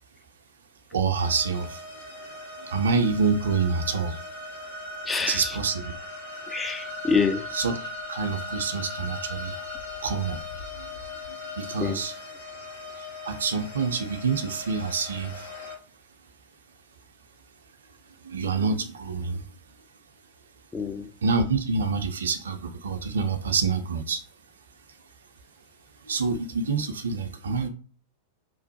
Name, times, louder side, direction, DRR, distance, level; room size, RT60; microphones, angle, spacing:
voice 1, 0.9-1.8 2.6-4.1 5.3-5.9 7.5-7.7 8.1-9.6 10.0-10.4 10.8-10.9 11.3-12.1 13.2-15.5 18.2-19.4 21.2-24.2 26.0-27.7, right 5 dB, 65° right, 0.5 m, -27 dB
sound 1, 1.1-15.8, left 2 dB, 70° left, 1.3 m, -39 dB
voice 2, 5.1-5.6 6.5-7.5 11.8-12.0 20.7-21.1, left 5 dB, 10° left, 0.4 m, -26 dB
3.0 x 2.0 x 2.8 m
figure-of-eight pair, 90°, 0 cm